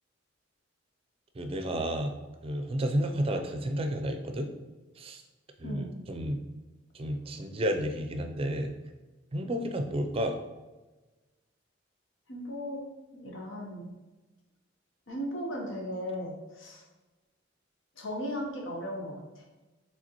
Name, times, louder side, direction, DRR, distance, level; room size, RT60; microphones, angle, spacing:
voice 1, 1.4-2.1 2.4-4.5 5.0-5.2 5.6-6.4 6.9-8.7 9.3-10.4, equal, 30° right, 6 dB, 0.4 m, -31 dB
voice 2, 12.3-12.8 13.1-13.9 15.1-16.8 18.0-19.4, equal, 85° left, 1 dB, 1.0 m, -37 dB
5.0 x 3.5 x 3.0 m, 1.1 s
head